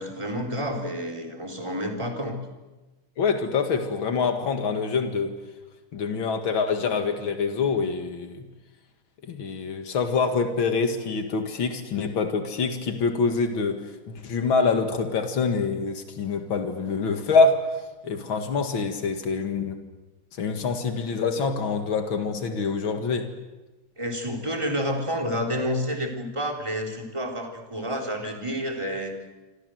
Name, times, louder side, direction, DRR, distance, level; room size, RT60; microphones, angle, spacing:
voice 1, 0.0-2.4 24.0-29.1, equal, 15° right, 2 dB, 3.8 m, -29 dB
voice 2, 3.2-5.3 5.9-8.5 9.3-13.8 14.1-17.6 18.0-19.8 20.4-23.3, left 4 dB, 85° left, 5 dB, 2.7 m, -25 dB
27.5 x 26.5 x 7.8 m, 1.1 s
omnidirectional pair, 2.1 m